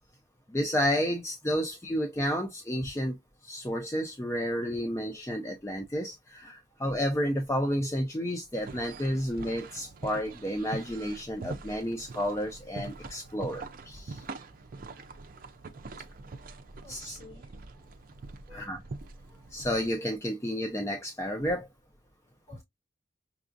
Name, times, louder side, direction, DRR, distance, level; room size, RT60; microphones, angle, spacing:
voice 1, 0.5-3.2 3.4-14.3 16.9-17.2 18.5-18.8 19.5-21.7, equal, 15° left, 0.5 m, -31 dB
sound 1, 8.5-19.7, right 3 dB, 50° right, 0.5 m, -44 dB
voice 2, 16.8-17.9 18.2-18.8 22.5-22.6, left 3 dB, 40° left, 2.8 m, -55 dB
5.9 x 2.4 x 2.5 m
head